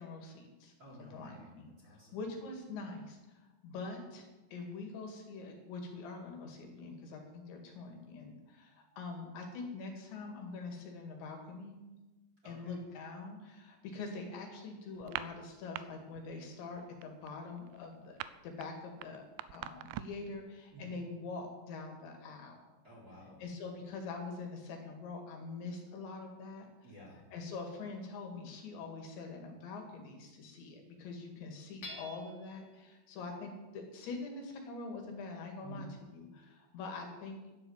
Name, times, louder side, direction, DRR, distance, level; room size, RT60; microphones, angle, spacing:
voice 1, 0.0-0.7 1.1-11.8 12.5-18.2 18.4-19.2 19.5-22.6 23.4-26.7 27.3-35.9 36.1-37.4, left 3 dB, 75° left, 2 dB, 4.2 m, -44 dB
voice 2, 0.8-2.2 12.4-12.8 20.7-20.9 22.8-23.4 26.8-27.2 35.6-35.9, right 1 dB, 20° right, -5 dB, 3.7 m, -52 dB
sound 1, 15.0-15.8 16.1-16.5 16.7-20.3, right 14 dB, 85° right, 3.0 m, -43 dB
Hammer / Chink clink, 31.8-32.6, left 1 dB, 45° left, 3.7 m, -47 dB
11.5 x 10.5 x 7.3 m, 1.1 s
omnidirectional pair, 5.4 m